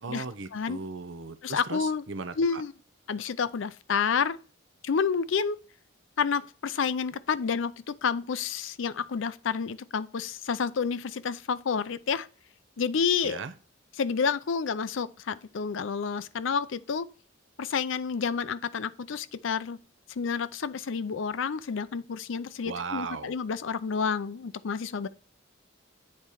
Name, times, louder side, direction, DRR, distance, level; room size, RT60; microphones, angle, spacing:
voice 1, 0.0-2.6 13.2-13.5 22.6-23.4, right 4 dB, 70° right, 0.7 m, -37 dB
voice 2, 1.4-2.0 2.4-2.7 3.1-4.4 4.8-5.6 6.2-12.3 12.8-13.4 14.0-17.1 17.6-19.8 20.2-25.1, left 6 dB, 70° left, 0.5 m, -29 dB
8.7 x 4.2 x 4.8 m
head